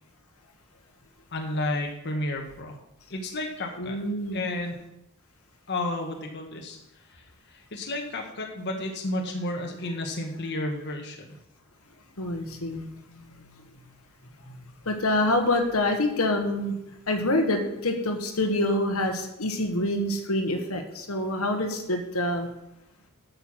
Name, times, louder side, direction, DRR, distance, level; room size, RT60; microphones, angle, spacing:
voice 1, 1.3-2.8 3.1-4.0 4.3-4.8 5.7-6.8 7.1-7.2 7.5-11.3, left 1 dB, 50° left, 2 dB, 1.2 m, -32 dB
voice 2, 3.8-4.4 12.2-12.9 14.5-14.6 14.8-16.7 17.1-22.5, left 1 dB, 70° left, 5 dB, 1.3 m, -26 dB
8.5 x 6.6 x 6.2 m, 0.85 s
head